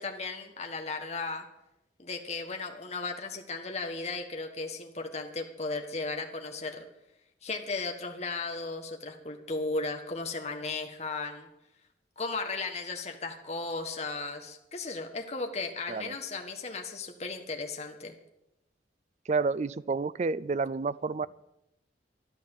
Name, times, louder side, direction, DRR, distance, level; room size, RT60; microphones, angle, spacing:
voice 1, 0.0-1.5 2.0-6.9 7.4-11.5 12.2-18.2, left 3 dB, 35° left, 4 dB, 1.5 m, -35 dB
voice 2, 19.3-21.3, right 4 dB, 40° right, 18 dB, 0.4 m, -29 dB
12.0 x 11.5 x 7.3 m, 0.88 s
head